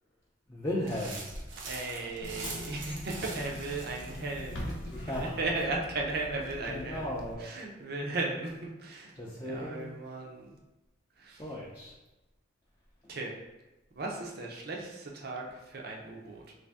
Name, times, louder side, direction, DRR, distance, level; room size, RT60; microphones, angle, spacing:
voice 1, 0.5-1.3 4.9-5.4 6.6-7.5 9.1-10.0 11.4-11.9, left 1 dB, 15° left, -6 dB, 0.5 m, -36 dB
sound 1, 0.9-5.0, right 3 dB, 85° right, 0.8 m, -44 dB
voice 2, 1.6-4.7 5.1-7.1 7.4-10.6 11.2-11.4 13.1-13.3 14.0-16.5, right 2 dB, 55° right, 0 dB, 0.6 m, -36 dB
Bus / Engine, 2.2-7.3, left 1 dB, 80° left, 0.6 m, -43 dB
3.2 x 2.6 x 3.4 m, 1.0 s
head